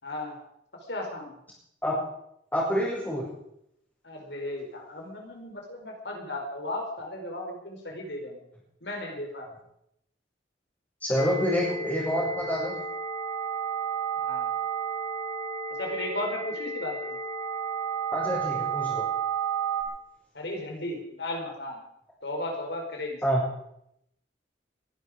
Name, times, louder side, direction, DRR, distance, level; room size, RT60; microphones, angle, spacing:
voice 1, 0.0-0.4 0.9-1.4 4.0-8.4 8.8-9.5 14.2-14.5 15.8-17.2 20.3-21.8 22.2-23.2, left 1 dB, 65° left, 1 dB, 4.8 m, -35 dB
voice 2, 2.5-3.3 11.0-12.8 18.1-19.0 23.2-23.4, equal, 10° left, -10 dB, 6.1 m, -27 dB
sound 1, 11.2-19.8, right 6 dB, 30° left, 4.0 m, -32 dB
22.5 x 11.5 x 5.1 m, 0.77 s
head